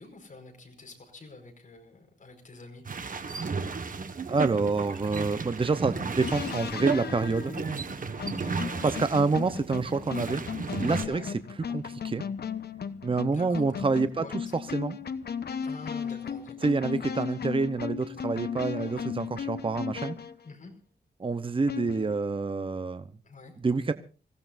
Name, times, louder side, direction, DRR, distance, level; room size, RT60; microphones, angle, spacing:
voice 1, 0.0-2.8 8.3-9.0 11.0-11.3 13.1-13.6 14.2-14.5 15.6-16.6 18.8-19.1 20.4-20.7 23.2-23.5, left 3 dB, 50° left, 3 dB, 4.7 m, -47 dB
sound 1, 2.9-11.1, right 5 dB, 50° right, 1.4 m, -34 dB
voice 2, 4.3-7.5 8.8-10.4 10.8-11.4 11.7-12.2 13.0-14.2 14.7-15.0 16.6-20.2 21.2-23.1 23.6-23.9, right 4 dB, 30° right, 11 dB, 0.8 m, -27 dB
sound 2, 6.2-20.4 21.7-22.3, left 7 dB, 70° left, 1.0 m, -36 dB
26.0 x 16.0 x 2.6 m, 0.34 s
wide cardioid pair, 95°, 18 cm